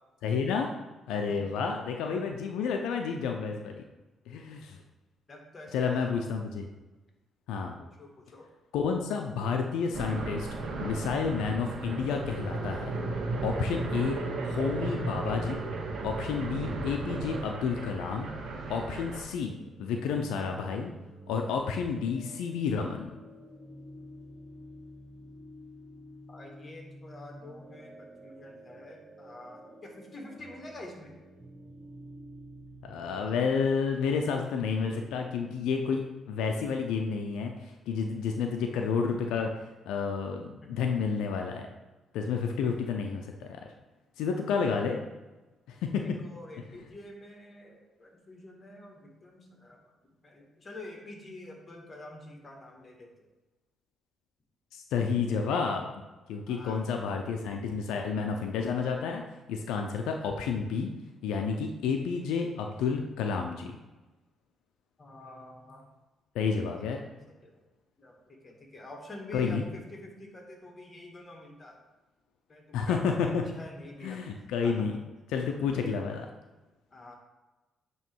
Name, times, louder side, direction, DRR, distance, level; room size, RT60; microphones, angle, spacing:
voice 1, 0.2-0.7 1.1-3.8 4.3-4.8 5.7-6.7 7.5-7.8 8.7-10.5 10.8-12.9 13.4-15.6 16.0-18.3 18.7-20.9 21.3-23.1 32.8-36.0 36.3-39.5 39.9-41.7 42.1-43.6 44.2-45.0 45.7-46.2 54.7-55.9 56.3-59.2 59.5-60.9 61.2-63.8 66.3-67.0 69.3-69.7 72.7-73.4 74.0-74.9 75.3-76.3, left 5 dB, 90° left, 3 dB, 0.6 m, -30 dB
voice 2, 5.3-6.1 7.8-8.5 26.3-31.1 46.2-49.8 50.2-53.3 56.5-56.8 65.0-65.9 66.8-66.9 67.3-67.6 68.0-71.8 72.5-74.2 74.6-74.9 76.9-77.2, left 1 dB, 30° left, 0 dB, 1.8 m, -47 dB
sound 1, 9.9-19.2, right 3 dB, 65° right, 1.2 m, -35 dB
sound 2, 19.4-35.4, equal, 25° right, 1.0 m, -50 dB
9.0 x 3.1 x 4.6 m, 1.1 s
cardioid pair, 90°, 0 cm